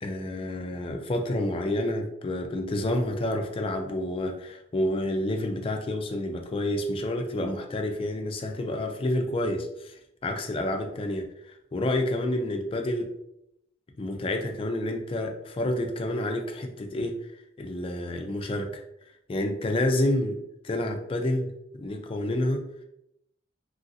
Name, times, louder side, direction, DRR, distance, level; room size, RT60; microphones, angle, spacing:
voice 1, 0.0-13.1 14.0-17.1 17.6-18.8 19.3-20.4 20.6-21.5 21.8-22.7, left 1 dB, 30° left, 4 dB, 0.4 m, -29 dB
3.1 x 2.6 x 2.6 m, 0.80 s
head